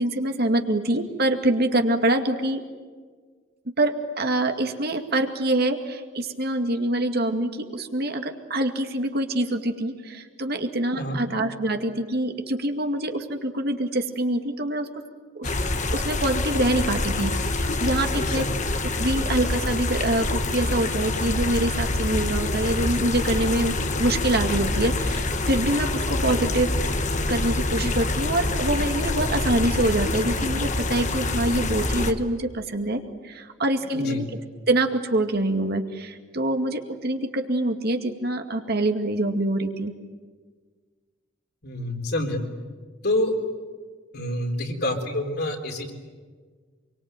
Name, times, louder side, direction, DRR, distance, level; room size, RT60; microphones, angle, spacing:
voice 1, 0.0-2.6 3.7-14.9 15.3-15.5 15.9-18.4 19.0-34.3 34.7-39.9, right 1 dB, 55° right, 5 dB, 2.2 m, -25 dB
sound 1, 15.4-32.1, left 2 dB, 40° left, 1.5 m, -26 dB
voice 2, 18.2-18.5 33.9-34.2 41.6-42.4 43.0-43.3 44.1-45.9, left 1 dB, 55° left, 3 dB, 4.1 m, -27 dB
26.5 x 24.0 x 9.1 m, 1.5 s
head